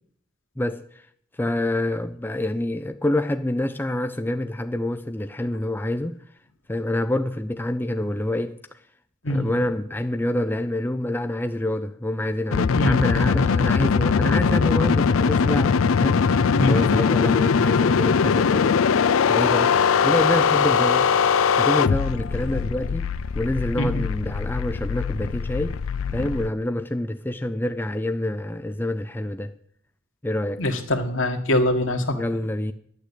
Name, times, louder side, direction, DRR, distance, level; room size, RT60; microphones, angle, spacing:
voice 1, 0.6-1.0 1.3-6.2 6.7-8.6 9.3-16.4 16.7-18.8 19.3-19.8 20.0-21.1 21.6-25.8 26.1-29.5 30.2-30.6 32.1-32.7, left 1 dB, 10° left, 0.5 m, -27 dB
sound 1, 12.5-26.5, left 6 dB, 85° left, 0.5 m, -21 dB
voice 2, 30.6-32.2, left 1 dB, 65° left, 1.8 m, -23 dB
11.5 x 9.0 x 8.3 m
head